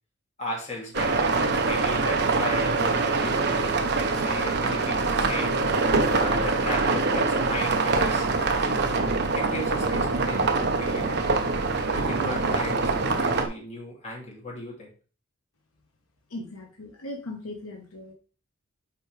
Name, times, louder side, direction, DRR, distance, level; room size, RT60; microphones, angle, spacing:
voice 1, 0.4-3.7 4.1-5.6 6.1-8.3 9.3-11.4 11.9-14.9, left 1 dB, 30° left, -2 dB, 2.4 m, -36 dB
sound 1, 0.9-13.5, right 3 dB, 50° right, 0.8 m, -24 dB
voice 2, 16.3-18.1, left 2 dB, 80° left, 2 dB, 1.2 m, -38 dB
7.3 x 4.7 x 3.2 m, 0.38 s
head